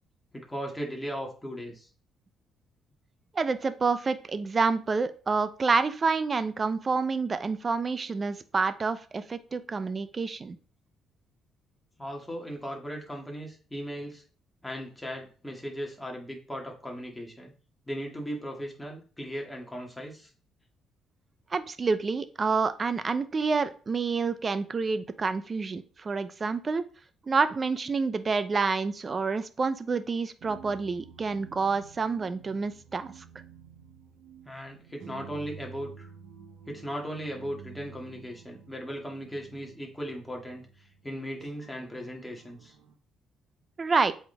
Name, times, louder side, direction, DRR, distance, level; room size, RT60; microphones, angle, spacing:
voice 1, 0.3-1.9 12.0-14.2 14.6-17.5 17.9-20.3 34.5-36.1 36.7-40.6 41.0-42.7, equal, 5° left, 0 dB, 2.2 m, -37 dB
voice 2, 3.3-10.6 21.5-26.8 27.3-33.1 43.8-44.1, right 4 dB, 35° right, 12 dB, 0.7 m, -28 dB
sound 1, 30.4-42.9, right 6 dB, 80° right, 1.2 m, -50 dB
7.7 x 4.4 x 3.4 m, 0.38 s
cardioid pair, 90°, 0 cm